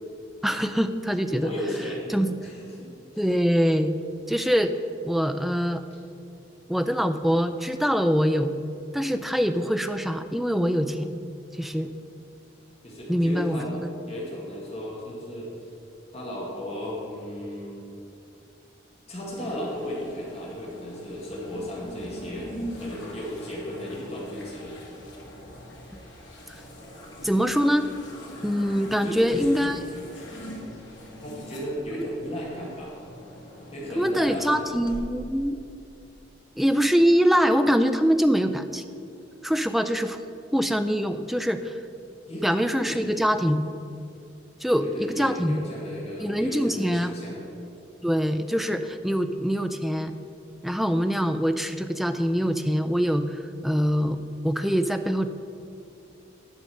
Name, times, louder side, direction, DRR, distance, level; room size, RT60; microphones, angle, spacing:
voice 1, 0.4-1.5 2.1-2.3 3.2-3.9 4.3-4.7 5.0-5.8 6.7-8.6 8.9-11.2 11.6-11.9 13.1-13.9 27.2-27.8 28.4-29.8 31.9-32.1 34.0-35.6 36.6-38.8 39.4-40.2 40.5-41.8 42.4-43.7 44.6-45.6 46.2-47.1 48.0-50.1 50.6-55.3, equal, ahead, 8 dB, 0.3 m, -24 dB
voice 2, 1.4-2.1 2.4-3.2 12.8-13.7 14.1-15.5 16.1-17.8 19.1-24.7 29.0-29.6 30.1-31.0 31.2-32.9 33.7-34.7 42.3-42.5 42.9-43.2 44.8-47.4, equal, 35° left, -4 dB, 1.7 m, -35 dB
sound 1, 19.3-35.0, equal, 75° left, 2.1 m, -43 dB
10.0 x 5.3 x 6.2 m, 2.6 s
head